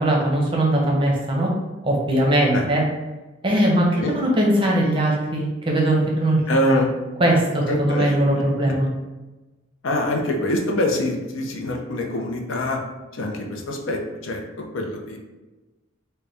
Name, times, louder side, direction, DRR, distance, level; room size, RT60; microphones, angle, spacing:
voice 1, 0.0-1.5 1.8-2.8 3.4-6.4 6.7-6.8 7.2-8.9, right 1 dB, 25° right, -2 dB, 0.6 m, -20 dB
voice 2, 6.5-6.9 7.7-8.2 9.8-12.8 13.1-15.2, left 1 dB, 70° left, 1 dB, 0.6 m, -24 dB
3.9 x 2.2 x 3.4 m, 1.1 s
head